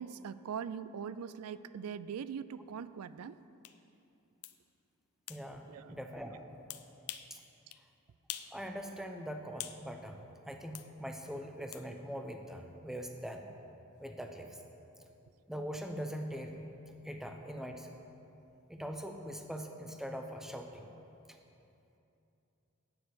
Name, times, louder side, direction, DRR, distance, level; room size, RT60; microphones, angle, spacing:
voice 1, 0.0-3.4 5.7-6.0, right 7 dB, 80° right, 15 dB, 0.4 m, -41 dB
sound 1, 3.6-3.8 4.4-4.6 5.3-5.4 6.7-7.3 7.7-7.8 8.3-8.6 8.9-9.8 10.7-10.9 11.7-11.9, left 13 dB, 70° left, 0.5 m, -44 dB
voice 2, 5.3-6.6 7.3-7.4 8.5-13.5 14.0-14.6 15.5-16.7 17.0-18.0 18.7-20.9, equal, ahead, 4 dB, 0.7 m, -42 dB
9.6 x 6.5 x 7.8 m, 2.8 s
head